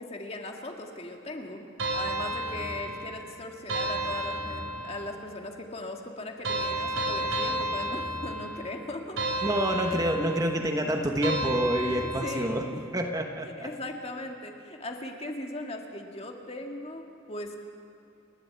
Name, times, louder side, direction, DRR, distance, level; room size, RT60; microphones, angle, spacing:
voice 1, 0.0-9.5 12.0-12.8 13.5-17.6, left 1 dB, 30° left, 2 dB, 1.9 m, -39 dB
sound 1, 1.8-3.1 3.7-5.0 6.4-8.6 9.2-10.5 11.2-12.5, right 1 dB, 80° right, 4.6 m, -31 dB
voice 2, 9.4-12.6 12.9-13.7, equal, 20° right, 3 dB, 1.2 m, -27 dB
30.0 x 12.0 x 8.7 m, 2.7 s
head